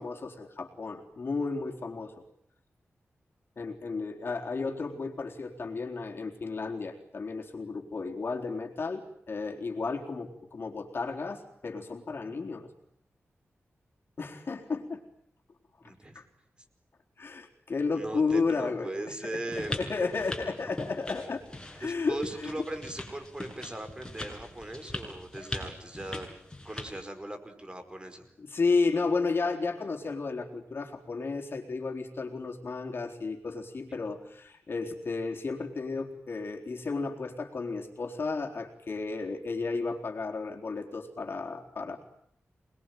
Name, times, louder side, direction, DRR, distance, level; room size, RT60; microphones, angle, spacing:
voice 1, 0.0-2.2 3.6-12.7 14.2-15.0 16.1-16.2 17.2-19.0 19.3-21.4 21.8-22.5 25.4-25.5 28.4-42.0, left 4 dB, 55° left, 2 dB, 4.0 m, -33 dB
voice 2, 15.8-16.2 17.9-19.8 21.8-26.3 26.6-28.3, right 1 dB, 20° right, 7 dB, 4.9 m, -39 dB
sound 1, 19.5-27.0, left 1 dB, 15° left, 7.3 m, -41 dB
27.5 x 21.0 x 9.2 m, 0.68 s
wide cardioid pair, 110°, 5 cm